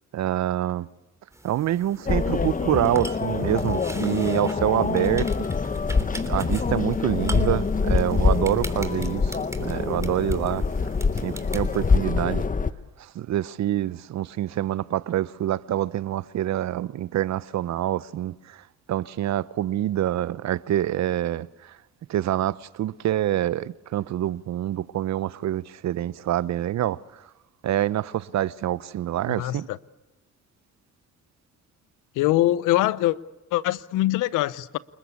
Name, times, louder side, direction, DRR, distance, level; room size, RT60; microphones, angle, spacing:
voice 1, 0.1-0.9 1.4-5.3 6.3-10.7 11.2-12.4 13.0-21.8 22.1-27.2 27.6-29.7, right 12 dB, 60° right, 0.8 m, -26 dB
sound 1, 1.3-12.0, right 1 dB, 10° right, 3.2 m, -42 dB
sound 2, 2.1-12.7, left 4 dB, 25° left, 1.1 m, -25 dB
voice 2, 29.3-29.8 32.1-33.2 33.5-34.8, left 15 dB, 80° left, 0.9 m, -23 dB
29.0 x 21.0 x 8.4 m
supercardioid pair, 70°, 31 cm